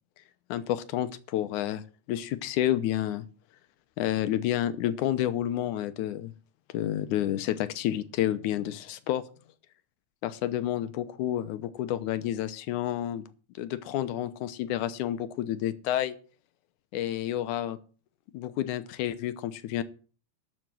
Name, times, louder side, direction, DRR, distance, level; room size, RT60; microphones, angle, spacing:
voice 1, 0.5-1.8 2.1-3.2 4.0-6.3 6.7-9.3 10.2-13.2 13.6-16.2 16.9-17.8 18.3-19.8, left 12 dB, 85° left, 13 dB, 2.3 m, -30 dB
12.5 x 6.5 x 7.6 m, 0.39 s
omnidirectional pair, 3.5 m